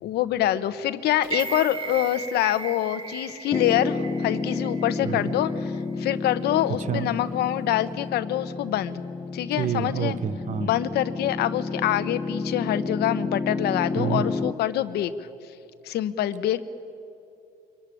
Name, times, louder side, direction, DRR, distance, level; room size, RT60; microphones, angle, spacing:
voice 1, 0.0-9.0 9.3-10.2 10.6-15.1 15.8-16.6, left 12 dB, 75° left, 13 dB, 1.0 m, -25 dB
sound 1, 1.2-5.4 5.8-5.9, right 5 dB, 30° right, 1.8 m, -36 dB
Piano, 3.5-14.5, left 3 dB, 20° left, 0.8 m, -31 dB
voice 2, 9.6-10.7 14.0-14.2, right 9 dB, 45° right, 15 dB, 1.0 m, -28 dB
24.0 x 21.5 x 10.0 m, 2.7 s
cardioid pair, 110°, 17 cm